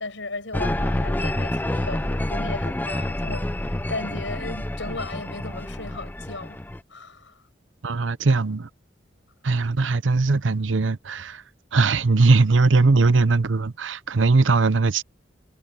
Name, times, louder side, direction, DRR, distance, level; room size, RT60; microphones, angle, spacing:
voice 1, 0.0-6.6 6.9-7.4, left 3 dB, 85° left, 6.3 m, -36 dB
sound 1, 0.5-6.8, left 1 dB, 10° left, 0.5 m, -28 dB
voice 2, 7.8-8.7 9.4-11.4 11.7-15.0, right 3 dB, 85° right, 0.8 m, -20 dB
head